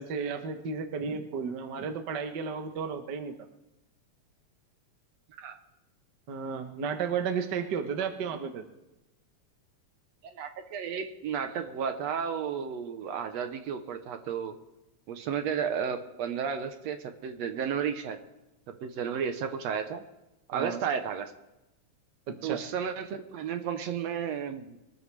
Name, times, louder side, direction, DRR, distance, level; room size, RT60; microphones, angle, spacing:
voice 1, 0.0-3.4 6.3-8.6 20.5-20.8 22.3-22.6, right 6 dB, 55° right, 6 dB, 1.2 m, -33 dB
voice 2, 10.2-14.6 15.1-18.2 18.8-20.0 20.5-21.3 22.4-24.8, right 7 dB, 70° right, 7 dB, 2.0 m, -33 dB
23.5 x 13.5 x 3.4 m, 0.97 s
omnidirectional pair, 3.3 m